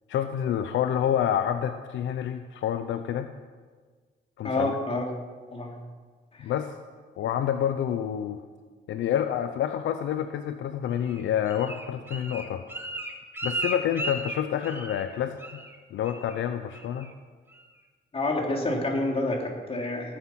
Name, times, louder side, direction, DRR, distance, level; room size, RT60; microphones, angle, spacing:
voice 1, 0.1-3.3 4.4-4.8 6.4-6.7 7.2-8.4 8.9-12.6 13.4-15.4 15.9-17.1, left 9 dB, 75° left, 9 dB, 0.7 m, -28 dB
voice 2, 4.4-5.1 5.5-5.7 18.1-20.2, left 2 dB, 30° left, 0 dB, 3.5 m, -28 dB
Bird, 11.0-15.1 15.4-15.8 16.0-16.4 16.7-17.1 17.5-17.6, right 1 dB, 10° right, 1.8 m, -35 dB
19.0 x 9.9 x 5.9 m, 1.5 s
cardioid pair, 90°, 20 cm